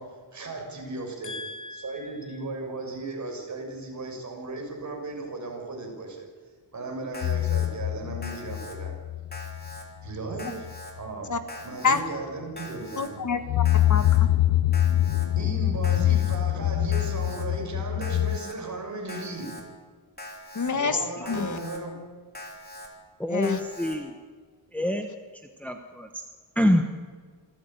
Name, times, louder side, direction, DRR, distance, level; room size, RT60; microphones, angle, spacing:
voice 1, 0.0-1.4 1.7-6.3 6.7-9.0 10.0-10.7 10.9-13.2 15.3-19.8 20.6-22.1, right 2 dB, 45° right, 1 dB, 6.3 m, -36 dB
voice 2, 1.2-2.0 11.3-11.4 11.8-12.0 13.0-13.6 13.9-14.3 20.5-21.6 23.3-23.6, left 5 dB, 45° left, 9 dB, 1.4 m, -28 dB
Alarm, 7.1-7.7 8.2-8.8 9.3-9.8 10.4-10.9 11.5-12.0 12.6-13.1 13.6-14.2 14.7-15.3 15.8-16.4 16.9-17.4 18.0-18.5 19.1-19.6 20.2-20.7 21.3-21.8 22.3-22.9 23.4-24.0, left 1 dB, 20° left, 3.5 m, -42 dB
sound 1, 7.2-9.8 10.0-10.4 10.7-10.8 13.3-18.4, left 13 dB, 90° left, 0.6 m, -24 dB
voice 3, 23.2-24.1 24.7-25.1 25.6-26.2 26.6-26.8, left 1 dB, 5° left, 4 dB, 1.2 m, -25 dB
27.0 x 15.0 x 9.1 m, 1.6 s
wide cardioid pair, 180°, 42 cm